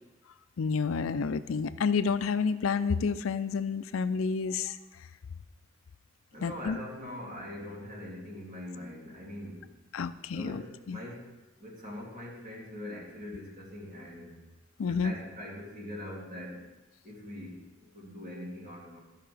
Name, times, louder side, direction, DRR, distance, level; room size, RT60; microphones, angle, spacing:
voice 1, 0.6-4.8 6.4-6.8 9.9-10.6 10.9-11.0 14.8-15.1, left 5 dB, 90° left, 13 dB, 0.4 m, -29 dB
voice 2, 6.3-9.7 10.3-14.4 14.9-16.7 17.0-19.0, left 1 dB, 40° right, -5 dB, 2.8 m, -42 dB
14.0 x 5.6 x 3.4 m, 1.1 s
head